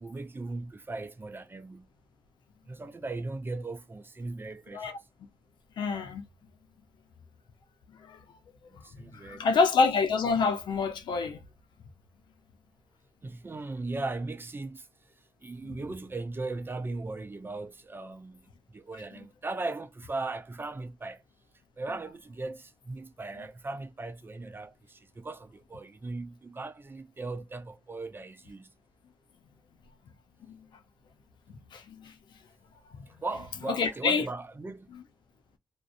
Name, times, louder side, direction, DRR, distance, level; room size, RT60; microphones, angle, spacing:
voice 1, 0.0-1.9 2.7-5.0 8.7-9.4 13.2-14.9 15.4-18.4 18.7-21.2 21.8-28.7 33.2-34.9, right 3 dB, 30° right, 0.4 m, -38 dB
voice 2, 5.8-6.2 8.1-8.2 9.3-11.4 15.6-15.8 31.7-32.1 33.7-34.3 34.9-35.0, left 4 dB, 80° left, 0.6 m, -27 dB
2.4 x 2.1 x 2.5 m
cardioid pair, 65°, 8 cm